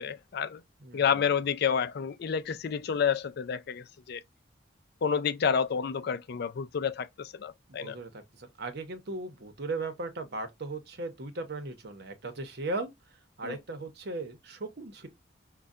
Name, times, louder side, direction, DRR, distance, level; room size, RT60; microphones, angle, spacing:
voice 1, 0.0-0.6 0.9-4.2 5.0-8.0 13.4-13.6, left 7 dB, 55° left, 0.4 m, -29 dB
voice 2, 0.8-1.4 7.7-12.9 13.4-15.1, right 2 dB, 60° right, 0.8 m, -37 dB
5.3 x 2.2 x 2.4 m
head